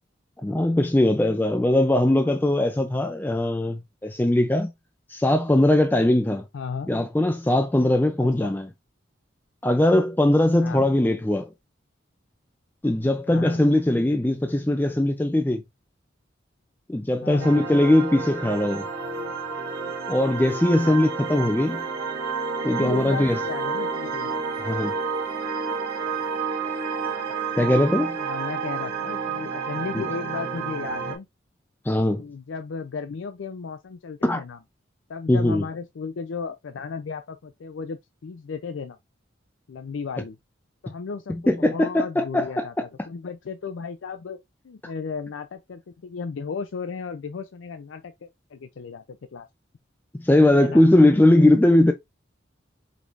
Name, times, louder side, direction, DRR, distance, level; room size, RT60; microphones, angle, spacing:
voice 1, 0.4-4.7 5.1-6.4 6.9-8.7 9.6-11.5 12.8-15.6 16.9-18.9 20.1-21.8 22.6-23.4 24.6-24.9 27.6-28.2 29.9-30.0 31.9-32.2 34.2-34.4 35.3-35.6 41.5-42.7 50.2-51.9, left 1 dB, 10° left, 0.4 m, -20 dB
voice 2, 6.5-6.9 8.2-8.5 10.6-10.9 13.3-13.6 17.2-17.7 20.8-21.0 22.7-24.4 28.2-31.3 32.1-34.6 35.1-39.0 39.7-40.4 40.8-44.4 44.6-49.5 50.6-50.8, left 5 dB, 85° left, 0.4 m, -35 dB
sound 1, 17.4-31.2, right 5 dB, 55° right, 1.5 m, -30 dB
5.1 x 3.2 x 2.5 m
head